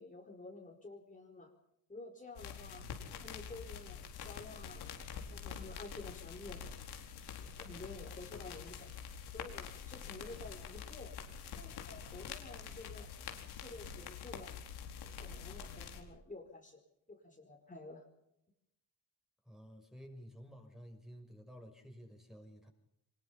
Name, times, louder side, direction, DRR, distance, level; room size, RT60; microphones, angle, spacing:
voice 1, 0.0-1.5 1.9-2.8 3.1-4.9 5.3-6.6 7.4-8.9 9.3-11.2 11.6-13.1 13.5-14.6 15.0-16.8 17.1-18.0, left 2 dB, 20° left, 1 dB, 4.8 m, -51 dB
sound 1, 2.4-16.0, left 7 dB, 85° left, 4.5 m, -46 dB
voice 2, 19.5-22.7, equal, ahead, 3 dB, 6.3 m, -53 dB
24.0 x 21.5 x 5.8 m, 0.83 s
cardioid pair, 95°, 38 cm